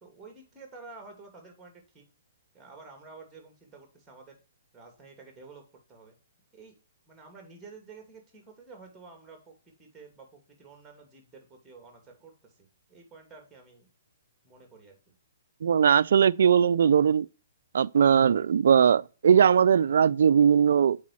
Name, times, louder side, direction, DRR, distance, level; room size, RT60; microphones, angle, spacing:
voice 1, 0.0-2.1 2.5-4.4 4.7-6.1 6.5-6.8 7.1-13.9 14.4-15.1, right 4 dB, 10° right, 2.5 m, -50 dB
voice 2, 15.6-17.3 17.7-21.0, right 7 dB, 70° right, 0.3 m, -20 dB
7.3 x 4.8 x 4.2 m
hypercardioid pair, 150°, 0 cm